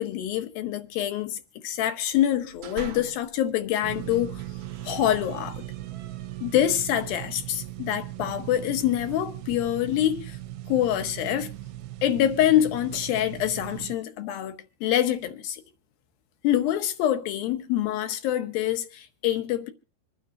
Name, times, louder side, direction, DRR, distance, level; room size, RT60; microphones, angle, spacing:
voice 1, 0.0-4.4 4.8-5.6 6.4-10.4 10.7-11.5 12.0-15.6 16.4-19.7, left 11 dB, 70° left, 2.9 m, -26 dB
sound 1, 2.2-3.4 3.9-6.7, right 7 dB, 65° right, 1.9 m, -45 dB
sound 2, 3.8-13.9, right 15 dB, 80° right, 2.6 m, -38 dB
27.0 x 9.6 x 2.7 m
omnidirectional pair, 4.4 m